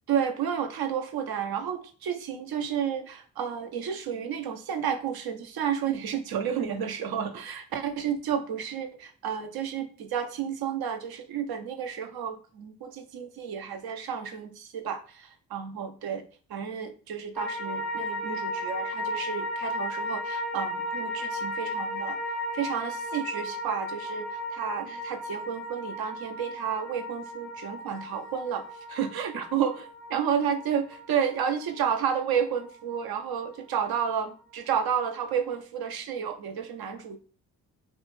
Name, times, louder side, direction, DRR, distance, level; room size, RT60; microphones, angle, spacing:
voice 1, 0.1-16.2 16.5-22.2 22.5-28.6 28.9-37.2, right 8 dB, 55° right, 7 dB, 0.5 m, -31 dB
sound 1, 17.4-33.7 34.0-34.1, left 1 dB, ahead, 0.4 m, -35 dB
2.4 x 2.2 x 3.0 m, 0.39 s
hypercardioid pair, 45°, 44 cm